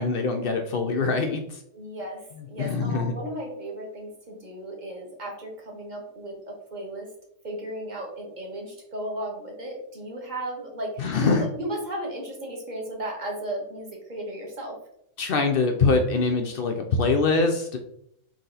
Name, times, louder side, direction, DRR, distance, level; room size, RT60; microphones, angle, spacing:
voice 1, 0.0-1.6 2.6-3.2 11.0-11.5 15.2-17.8, left 4 dB, 65° left, 4 dB, 0.5 m, -24 dB
voice 2, 1.7-7.1 7.4-14.7, right 1 dB, 35° right, -1 dB, 1.2 m, -35 dB
4.2 x 3.0 x 3.9 m, 0.72 s
omnidirectional pair, 1.5 m